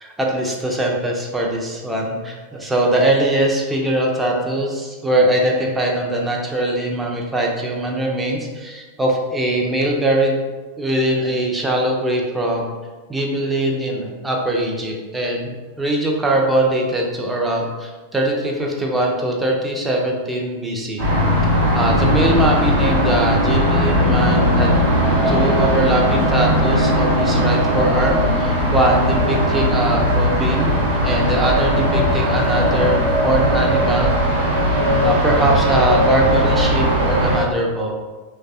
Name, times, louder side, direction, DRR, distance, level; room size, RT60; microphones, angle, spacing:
voice 1, 0.0-10.4 10.8-12.7 13.1-21.0 21.7-24.7 25.3-34.2 35.0-38.0, right 1 dB, 10° right, -1 dB, 0.5 m, -21 dB
sound 1, 21.0-37.4, equal, 55° right, 0.8 m, -18 dB
3.2 x 2.2 x 2.6 m, 1.3 s
figure-of-eight pair, 90°, 0 cm